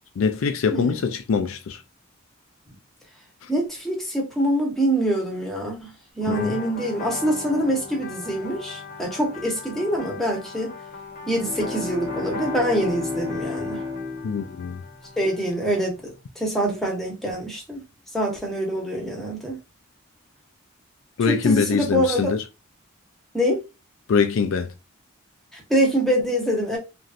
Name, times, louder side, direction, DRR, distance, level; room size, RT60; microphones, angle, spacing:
voice 1, 0.2-1.8 3.4-3.5 6.3-6.6 14.2-14.8 21.2-22.4 24.1-24.7, left 5 dB, 65° left, 0.4 m, -23 dB
voice 2, 3.5-5.9 6.2-10.7 11.3-13.8 15.2-16.0 16.4-17.8 18.1-19.6 21.2-22.3 23.3-23.6 25.5-26.8, equal, ahead, 0.9 m, -25 dB
sound 1, 6.2-15.8, left 4 dB, 40° left, 0.9 m, -38 dB
Bowed string instrument, 11.2-15.8, left 3 dB, 15° right, 0.4 m, -33 dB
3.1 x 2.6 x 2.4 m
head